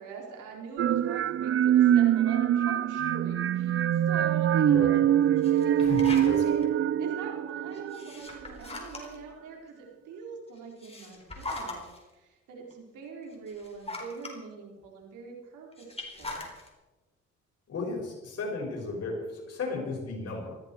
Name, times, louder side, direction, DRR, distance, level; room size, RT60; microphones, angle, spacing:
voice 1, 0.0-4.9 5.5-6.6 7.0-11.8 12.1-16.4, right 5 dB, 90° right, 0 dB, 4.4 m, -44 dB
sound 1, 0.8-8.5, right 10 dB, 45° right, 0.6 m, -24 dB
voice 2, 4.7-5.1 5.8-6.7 17.7-20.6, left 3 dB, 55° left, -1 dB, 6.3 m, -35 dB
sound 2, 5.4-6.6 7.7-9.3 10.6-12.0 12.7-12.8 13.3-14.4 15.7-16.7, left 2 dB, 20° left, 4.4 m, -40 dB
20.0 x 15.0 x 4.6 m, 1.1 s
cardioid pair, 90°, 30 cm